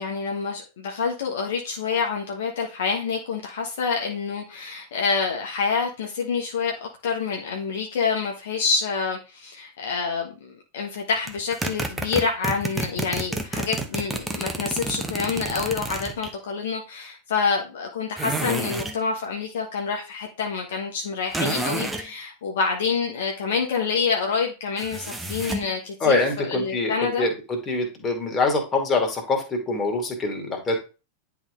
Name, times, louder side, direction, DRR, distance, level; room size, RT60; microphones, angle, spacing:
voice 1, 0.0-27.3, left 5 dB, 60° left, 1 dB, 1.2 m, -27 dB
sound 1, 11.3-16.3 18.2-19.0 21.3-22.1 24.8-25.7, right 2 dB, 5° right, 0.9 m, -29 dB
voice 2, 26.0-30.8, left 3 dB, 20° left, 2 dB, 2.1 m, -24 dB
10.0 x 3.5 x 3.7 m, 0.31 s
figure-of-eight pair, 90°, 0 cm